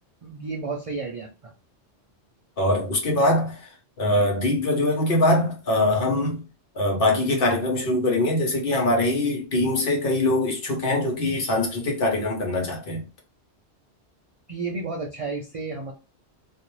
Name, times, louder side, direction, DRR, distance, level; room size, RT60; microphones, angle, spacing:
voice 1, 0.2-1.5 14.5-15.9, right 4 dB, 65° right, 0.3 m, -32 dB
voice 2, 2.6-6.4 6.7-13.0, left 1 dB, 55° left, 0.9 m, -23 dB
2.4 x 2.0 x 3.0 m
omnidirectional pair, 1.2 m